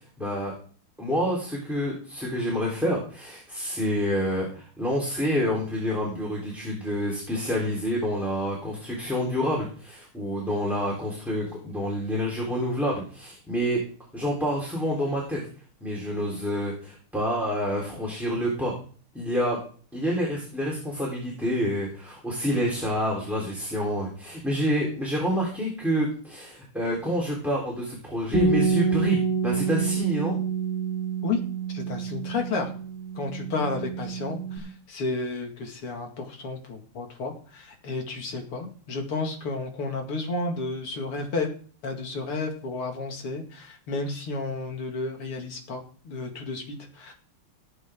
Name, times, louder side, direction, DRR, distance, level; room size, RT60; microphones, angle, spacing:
voice 1, 0.2-0.5 1.0-13.8 14.1-15.4 15.8-18.7 19.1-19.6 19.9-30.4, equal, ahead, -4 dB, 3.7 m, -28 dB
Bass guitar, 28.3-34.6, right 5 dB, 30° left, 3.6 m, -27 dB
voice 2, 31.7-32.7 33.1-41.5 41.8-47.1, left 3 dB, 90° left, 3 dB, 3.1 m, -32 dB
19.5 x 8.1 x 3.8 m, 0.43 s
omnidirectional pair, 2.4 m